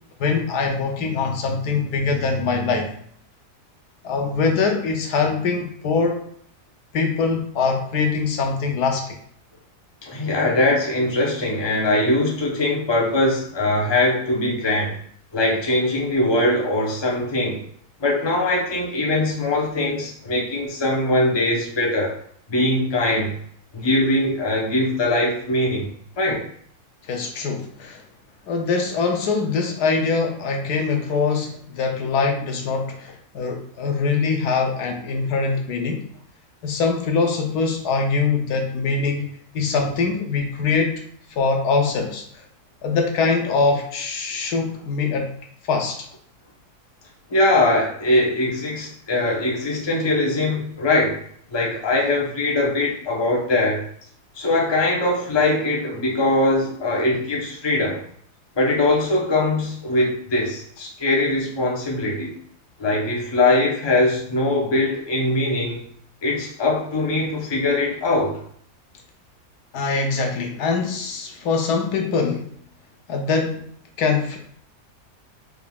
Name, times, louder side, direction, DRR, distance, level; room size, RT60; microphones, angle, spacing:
voice 1, 0.2-2.9 4.0-6.2 6.9-9.2 27.1-28.0 28.5-36.1 36.6-39.3 39.5-41.0 41.4-42.2 42.8-45.3 45.7-46.0 69.7-72.5 73.1-73.6 74.0-74.4, left 4 dB, 80° left, 3 dB, 1.2 m, -23 dB
voice 2, 10.0-14.9 15.3-17.6 18.0-22.1 22.5-23.3 23.7-26.4 47.3-51.2 51.5-53.8 54.3-58.0 58.6-62.4 62.8-65.8 66.2-68.4, left 2 dB, 20° left, -3 dB, 0.7 m, -21 dB
4.7 x 3.6 x 2.3 m, 0.62 s
omnidirectional pair, 1.7 m